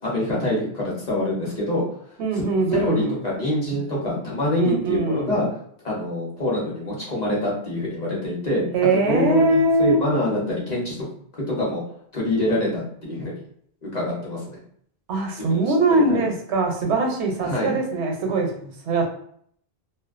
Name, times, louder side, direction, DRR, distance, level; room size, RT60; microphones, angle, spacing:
voice 1, 0.0-1.9 2.3-5.5 5.8-8.7 9.1-10.9 11.3-11.8 12.1-13.4 13.8-14.6 15.4-15.7 16.1-16.2 17.4-17.7, left 1 dB, 40° left, -5 dB, 0.9 m, -25 dB
voice 2, 2.2-3.2 4.6-5.4 8.7-10.0 15.1-19.1, right 2 dB, 85° right, 2 dB, 0.9 m, -22 dB
2.4 x 2.1 x 2.4 m, 0.64 s
omnidirectional pair, 1.1 m